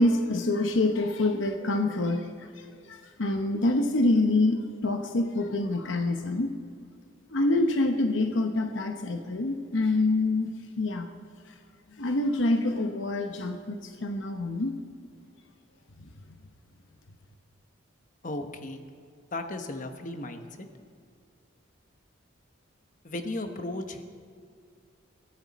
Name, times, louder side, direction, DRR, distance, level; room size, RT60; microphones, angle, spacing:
voice 1, 0.0-6.5 7.3-11.1 12.0-14.7, left 2 dB, 70° left, 6 dB, 0.9 m, -26 dB
voice 2, 18.2-18.8 19.3-20.7 23.0-24.0, left 2 dB, 40° left, 7 dB, 1.1 m, -35 dB
22.0 x 14.0 x 4.2 m, 2.1 s
head